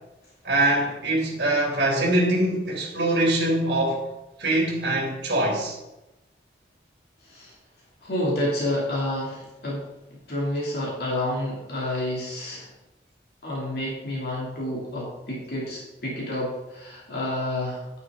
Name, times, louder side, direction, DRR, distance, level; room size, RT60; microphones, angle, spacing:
voice 1, 0.4-4.0 4.4-5.8, right 1 dB, 70° right, 2.5 m, -23 dB
voice 2, 7.2-7.5 8.0-9.8 10.3-12.7 13.4-18.0, left 1 dB, 60° left, 2.6 m, -29 dB
9.6 x 9.1 x 3.7 m
head